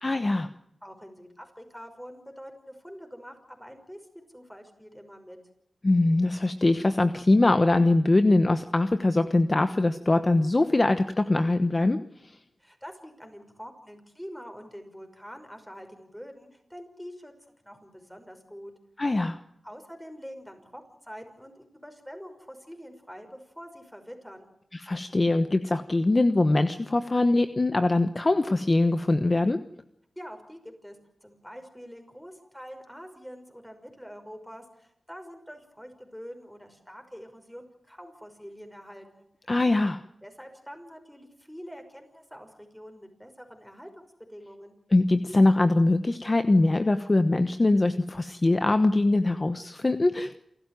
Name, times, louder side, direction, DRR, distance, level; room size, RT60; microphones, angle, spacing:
voice 1, 0.0-0.5 5.8-12.0 19.0-19.4 24.7-29.6 39.5-40.0 44.9-50.3, left 2 dB, 30° left, 10 dB, 1.1 m, -22 dB
voice 2, 0.8-5.4 12.6-17.3 17.6-18.7 19.6-24.5 30.2-39.3 40.2-44.0 44.3-44.8, equal, 5° left, 6 dB, 5.7 m, -45 dB
28.5 x 14.0 x 9.2 m, 0.77 s
wide cardioid pair, 85°, 0 cm